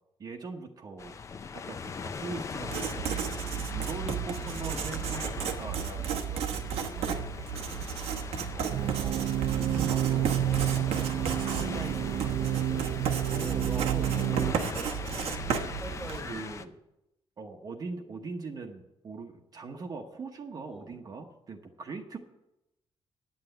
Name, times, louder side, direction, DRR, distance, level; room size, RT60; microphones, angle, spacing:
voice 1, 0.2-1.2 1.5-7.9 8.5-13.1 16.3-16.7 17.4-22.2, right 4 dB, 40° right, 2 dB, 0.9 m, -42 dB
sound 1, 1.0-16.6, left 5 dB, 30° left, 0.5 m, -40 dB
Writing, 2.6-16.4, right 8 dB, 90° right, 1.1 m, -34 dB
voice 2, 3.6-5.0 7.6-7.8 12.7-12.8 13.3-16.6 20.7-21.0, right 1 dB, ahead, 4 dB, 1.4 m, -45 dB
sound 2, 8.7-14.5, right 11 dB, 60° right, 0.6 m, -29 dB
9.6 x 7.8 x 7.9 m, 0.91 s
cardioid pair, 155°, 10 cm